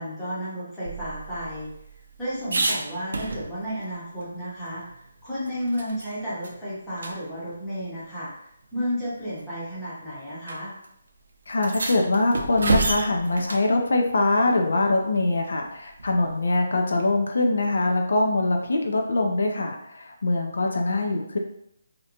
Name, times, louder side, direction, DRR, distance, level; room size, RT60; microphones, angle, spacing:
voice 1, 0.0-1.7 2.2-4.8 5.2-8.3 8.7-10.7 21.0-21.1, equal, 5° left, -12 dB, 0.7 m, -32 dB
sound 1, 0.8-3.8 4.2-4.3 4.7-6.1 6.4-6.6 7.0-7.1 8.2-8.3 9.2-9.5 10.5-10.6 10.8-10.9 11.5-13.7 16.0-16.4, right 2 dB, 80° right, 0.4 m, -30 dB
voice 2, 11.5-21.4, left 2 dB, 65° left, 2 dB, 0.4 m, -23 dB
2.6 x 2.2 x 2.7 m, 0.75 s
hypercardioid pair, 175°, 0 cm